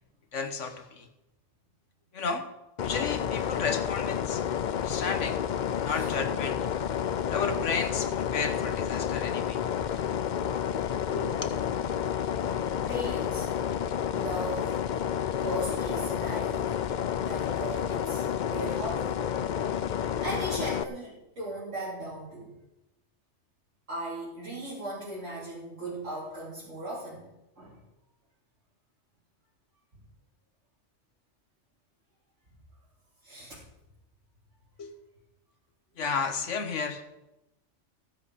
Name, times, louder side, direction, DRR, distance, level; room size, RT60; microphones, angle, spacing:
voice 1, 0.3-1.1 2.1-2.5 2.8-4.4 4.8-5.4 5.8-6.6 7.3-9.6 11.1-11.3 34.8-34.9 36.0-37.0, left 5 dB, 80° left, 7 dB, 1.6 m, -32 dB
sound 1, 2.8-20.8, left 9 dB, 55° left, 0.5 m, -30 dB
voice 2, 11.9-12.4 12.8-13.5 14.1-14.8 15.3-16.7 17.2-19.1 19.9-22.5 23.9-27.3 27.6-27.8 33.2-33.6, right 1 dB, 85° right, -10 dB, 4.1 m, -37 dB
15.5 x 10.5 x 5.0 m, 0.94 s
omnidirectional pair, 1.2 m